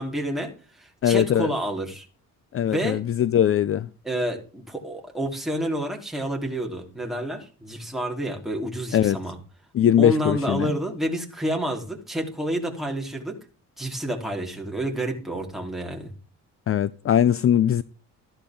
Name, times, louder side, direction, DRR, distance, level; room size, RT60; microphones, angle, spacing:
voice 1, 0.0-2.1 2.6-3.0 4.0-9.4 10.0-13.4 13.8-16.1, right 1 dB, ahead, 4.0 m, -29 dB
voice 2, 1.0-1.5 2.5-3.9 8.9-9.2 9.7-10.7 16.7-17.8, left 10 dB, 45° left, 0.6 m, -20 dB
14.5 x 11.5 x 3.9 m
cardioid pair, 90°, 30 cm